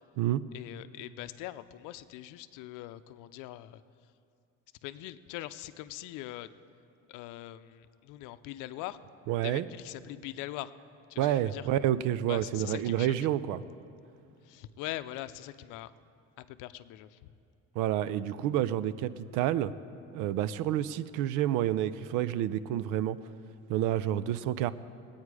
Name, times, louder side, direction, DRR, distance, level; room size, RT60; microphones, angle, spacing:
voice 1, 0.5-3.8 4.8-6.5 7.1-9.0 9.4-10.7 11.1-11.7 12.3-13.2 14.4-15.9 16.4-17.3, left 15 dB, 80° left, 13 dB, 0.6 m, -42 dB
voice 2, 9.3-9.6 11.2-13.6 17.8-19.7 20.1-23.2 23.7-24.7, right 12 dB, 80° right, 16 dB, 0.6 m, -29 dB
21.0 x 8.8 x 4.8 m, 2.5 s
cardioid pair, 130°, 31 cm